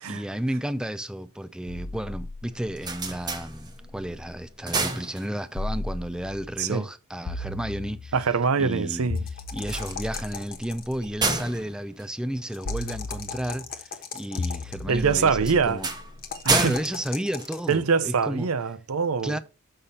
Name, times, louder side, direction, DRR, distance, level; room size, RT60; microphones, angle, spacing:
voice 1, 0.1-8.1 8.6-9.1 9.5-15.9 16.5-18.5 19.2-19.4, equal, 5° right, 0.3 m, -32 dB
sound 1, 1.7-4.4 5.5-6.6 7.3-8.4 9.1-11.4 12.6-13.7 14.4-16.5, left 2 dB, 90° left, 0.7 m, -36 dB
sound 2, 2.5-4.0 4.4-5.7 9.5-13.0 15.1-18.1, right 3 dB, 20° right, 0.9 m, -31 dB
voice 2, 8.1-9.2 14.9-15.8 16.4-16.7 17.7-19.4, right 5 dB, 75° right, 0.6 m, -24 dB
sound 3, 9.2-11.1 12.5-14.8 16.2-17.8, left 7 dB, 45° left, 1.1 m, -38 dB
6.6 x 5.6 x 4.2 m
head